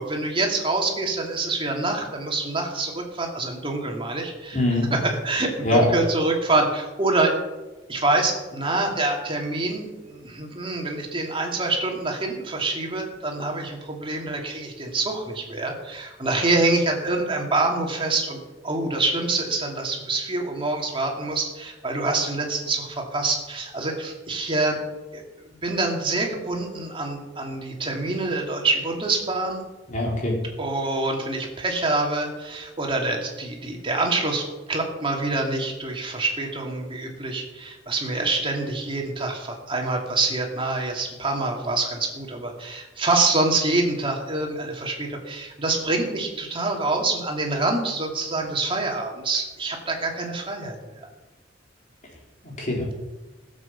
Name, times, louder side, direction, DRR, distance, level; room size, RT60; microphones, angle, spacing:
voice 1, 0.0-4.6 4.9-7.3 7.9-18.4 18.6-24.8 25.1-25.2 25.6-29.6 30.6-51.1, right 2 dB, 30° right, 1 dB, 2.6 m, -26 dB
voice 2, 4.5-4.9 5.6-5.9 29.9-30.4 52.4-52.9, left 1 dB, 45° left, -2 dB, 4.2 m, -22 dB
16.0 x 7.8 x 7.3 m, 1.1 s
head